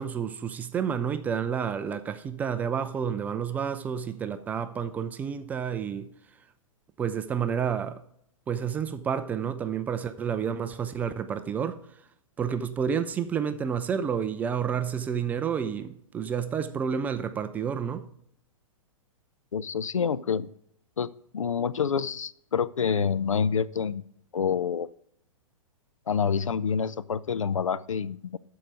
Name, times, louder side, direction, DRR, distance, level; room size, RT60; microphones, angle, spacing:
voice 1, 0.0-6.1 7.0-8.0 8.5-11.8 12.4-18.1, right 7 dB, 10° right, 0.3 m, -30 dB
voice 2, 19.5-20.5 21.0-24.0 24.3-24.9 26.1-28.4, left 6 dB, 70° left, 0.4 m, -27 dB
13.0 x 4.7 x 5.0 m
figure-of-eight pair, 110°, 17 cm